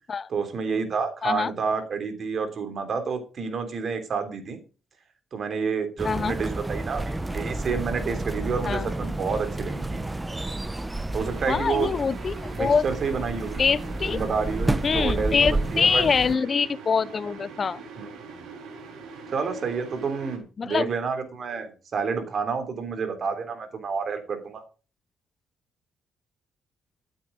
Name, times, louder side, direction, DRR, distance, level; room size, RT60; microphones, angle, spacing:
voice 1, 0.3-4.6 5.3-10.0 11.1-11.9 12.5-13.6 14.0-16.0 18.0-18.5 19.3-24.6, right 5 dB, 50° right, 3.3 m, -29 dB
sound 1, 6.0-16.3, right 2 dB, 15° right, 0.9 m, -30 dB
sound 2, 11.2-20.4, right 4 dB, 80° right, 3.7 m, -42 dB
voice 2, 11.5-12.8 13.6-14.2 14.8-17.8 20.6-20.9, left 5 dB, 40° left, 0.6 m, -24 dB
13.0 x 8.9 x 5.2 m
cardioid pair, 90°, 0 cm